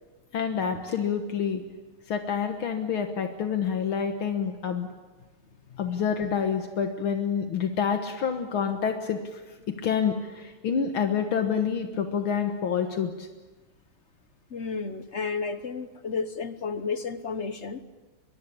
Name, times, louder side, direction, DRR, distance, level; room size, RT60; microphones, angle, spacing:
voice 1, 0.3-1.6 2.1-4.9 5.8-9.4 9.8-13.3, left 7 dB, 70° left, 6 dB, 2.2 m, -27 dB
voice 2, 14.5-17.8, left 5 dB, 45° left, 11 dB, 1.0 m, -32 dB
24.0 x 22.5 x 8.5 m, 1.2 s
omnidirectional pair, 2.4 m